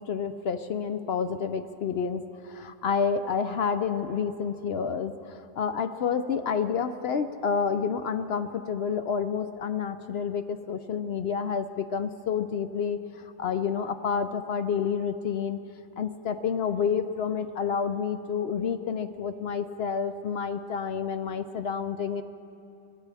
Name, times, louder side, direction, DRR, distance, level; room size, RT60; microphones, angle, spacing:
voice 1, 0.0-15.6 16.0-22.2, left 6 dB, 60° left, 10 dB, 0.7 m, -29 dB
24.5 x 14.5 x 3.4 m, 2.7 s
omnidirectional pair, 1.3 m